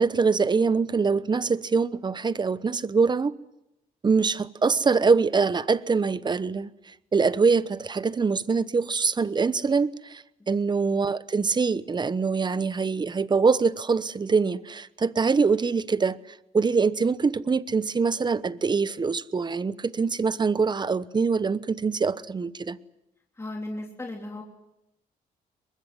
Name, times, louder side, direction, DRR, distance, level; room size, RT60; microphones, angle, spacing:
voice 1, 0.0-3.3 4.0-6.7 7.1-16.2 16.5-22.8, right 4 dB, 30° right, 1.0 m, -24 dB
voice 2, 23.4-24.4, left 2 dB, 15° left, 3.3 m, -36 dB
23.5 x 21.0 x 9.5 m
cardioid pair, 90°, 15 cm